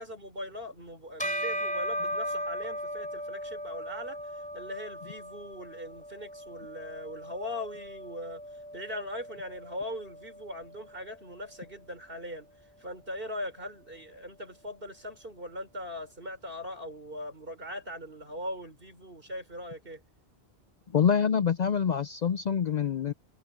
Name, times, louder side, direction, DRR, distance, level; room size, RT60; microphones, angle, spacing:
voice 1, 0.0-8.4 8.7-12.5 12.8-20.0, left 1 dB, 60° right, 5.3 m, -40 dB
Bell, 1.2-10.9, equal, 5° left, 3.5 m, -37 dB
voice 2, 20.9-23.1, left 7 dB, 55° left, 0.5 m, -26 dB
omnidirectional pair, 1.0 m